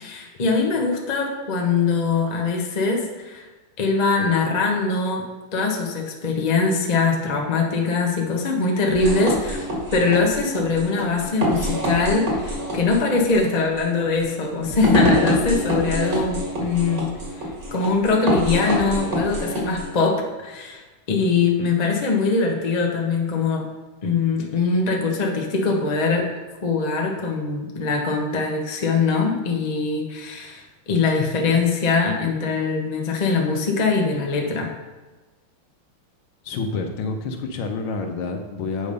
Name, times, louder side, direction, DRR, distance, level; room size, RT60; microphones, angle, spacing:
voice 1, 0.0-3.5 3.8-5.2 5.5-17.1 17.7-20.8 21.1-23.6 24.0-26.2 26.6-34.7, left 4 dB, 35° left, 1 dB, 0.6 m, -22 dB
sound 1, 8.9-19.9, equal, 55° right, 2.4 m, -26 dB
voice 2, 36.4-38.9, left 4 dB, 70° left, 4 dB, 1.6 m, -28 dB
8.2 x 5.1 x 5.4 m, 1.2 s
omnidirectional pair, 2.4 m